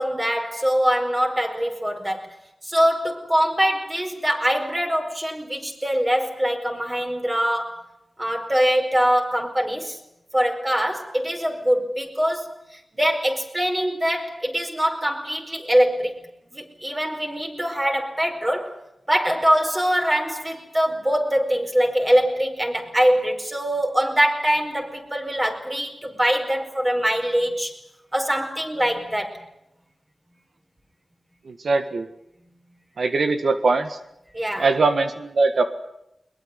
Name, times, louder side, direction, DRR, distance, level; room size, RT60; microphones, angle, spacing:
voice 1, 0.0-2.3 2.6-7.8 8.2-10.0 10.3-16.2 16.5-18.8 19.1-27.7 28.1-29.4 34.3-34.7, equal, 20° right, 4.9 m, -23 dB
voice 2, 31.4-32.1 33.0-34.0 34.6-35.6, right 3 dB, 75° right, 1.7 m, -21 dB
22.0 x 21.5 x 9.7 m
wide cardioid pair, 85°, 0 cm